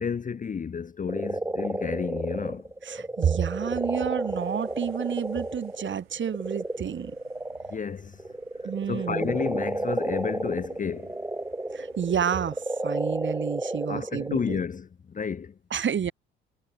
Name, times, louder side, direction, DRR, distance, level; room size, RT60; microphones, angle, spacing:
voice 1, 0.0-2.7 7.7-8.2 8.9-11.1 13.9-15.6, left 6 dB, 25° left, 1.0 m, -31 dB
sound 1, 1.1-7.8 8.1-14.5, right 2 dB, 10° right, 1.7 m, -32 dB
voice 2, 2.8-7.2 8.6-9.4 11.7-14.6 15.7-16.1, right 8 dB, 35° right, 2.5 m, -29 dB
sound 2, 3.5-12.7, right 16 dB, 70° right, 6.4 m, -59 dB
figure-of-eight pair, 50°, 32 cm